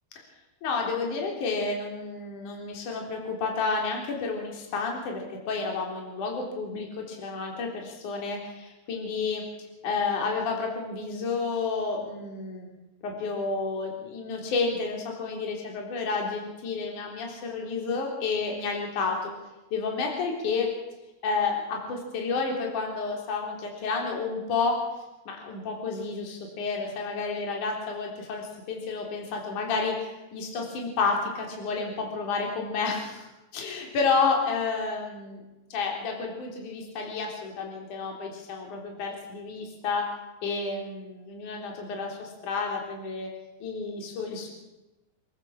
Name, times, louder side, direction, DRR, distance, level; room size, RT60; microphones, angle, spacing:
voice 1, 0.6-9.4 9.8-12.7 13.0-19.3 19.7-20.7 21.2-24.8 25.3-35.4 35.7-40.0 40.4-43.3 43.6-44.5, left 4 dB, 45° left, 1 dB, 4.8 m, -30 dB
28.0 x 14.0 x 7.5 m, 1.0 s
omnidirectional pair, 5.5 m